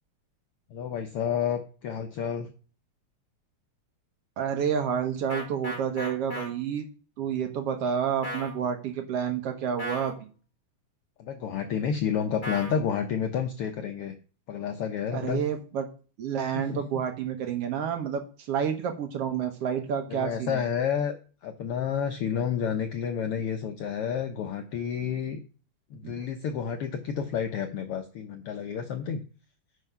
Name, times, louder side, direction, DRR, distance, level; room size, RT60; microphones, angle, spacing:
voice 1, 0.7-2.5 11.2-14.2 14.5-15.4 16.5-17.0 20.1-21.2 21.4-25.4 25.9-29.2, left 7 dB, 75° left, 7 dB, 1.3 m, -30 dB
voice 2, 4.4-6.9 7.2-10.3 15.1-15.8 16.2-20.6 26.0-26.2, right 8 dB, 60° right, 5 dB, 1.8 m, -29 dB
sound 1, 5.3-6.5 8.2-8.5 9.8-10.1 12.4-12.8, equal, 20° left, 1.4 m, -35 dB
9.6 x 4.8 x 5.5 m, 0.37 s
omnidirectional pair, 3.4 m